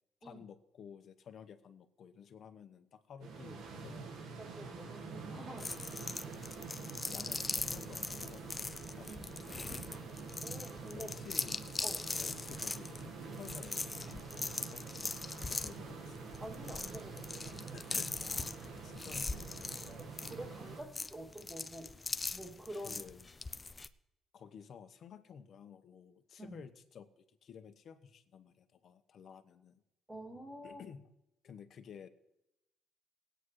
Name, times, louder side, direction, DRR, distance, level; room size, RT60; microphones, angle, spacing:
voice 1, 0.2-4.1 7.1-9.6 10.9-11.6 12.1-14.3 14.5-15.1 15.4-16.2 17.7-19.9 20.8-20.9 22.8-23.3 24.3-29.8 30.6-31.1 31.4-32.1, left 7 dB, 60° left, 9 dB, 1.1 m, -53 dB
voice 2, 3.2-3.6 3.9-4.0 4.4-5.8 9.1-9.5 10.4-11.1 11.8-12.2 16.4-17.8 19.9-21.9 22.3-23.0 26.4-26.6 30.1-30.8, right 1 dB, 15° right, 0 dB, 2.5 m, -48 dB
sound 1, 3.2-20.8, right 4 dB, 85° right, 1.5 m, -47 dB
sound 2, 5.6-23.9, left 3 dB, 25° left, 0.5 m, -41 dB
19.0 x 9.0 x 3.2 m, 0.86 s
cardioid pair, 90°, 0 cm